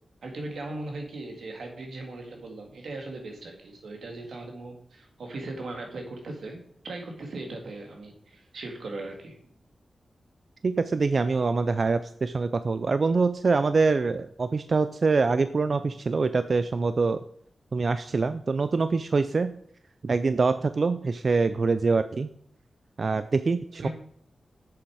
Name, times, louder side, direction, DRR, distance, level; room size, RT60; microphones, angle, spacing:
voice 1, 0.2-9.4 23.6-23.9, right 2 dB, 90° right, 3 dB, 2.0 m, -38 dB
voice 2, 10.6-17.2 17.7-19.5 20.0-22.3 23.0-23.9, right 4 dB, 50° right, 12 dB, 0.4 m, -24 dB
7.8 x 7.0 x 4.8 m, 0.64 s
wide cardioid pair, 130°, 0 cm